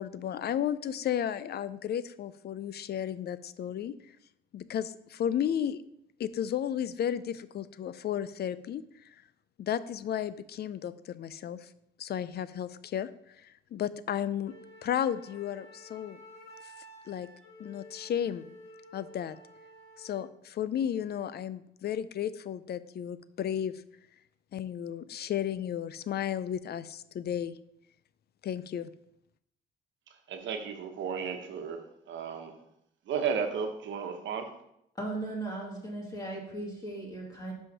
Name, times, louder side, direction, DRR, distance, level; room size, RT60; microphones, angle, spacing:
voice 1, 0.0-3.9 4.5-5.8 6.2-8.8 9.6-11.7 12.0-13.1 13.4-14.5 14.8-16.2 17.1-17.3 17.6-18.5 18.9-19.4 20.0-23.8 24.5-27.6 28.4-28.9, left 9 dB, 55° left, 15 dB, 0.5 m, -33 dB
Wind instrument woodwind instrument, 14.4-20.3, equal, 75° left, 3.2 m, -52 dB
voice 2, 30.3-32.6 33.1-34.5, right 6 dB, 70° right, 5 dB, 1.1 m, -34 dB
voice 3, 35.0-37.5, right 2 dB, 20° left, -4 dB, 2.4 m, -37 dB
5.6 x 5.4 x 5.4 m, 0.77 s
cardioid pair, 90°, 20 cm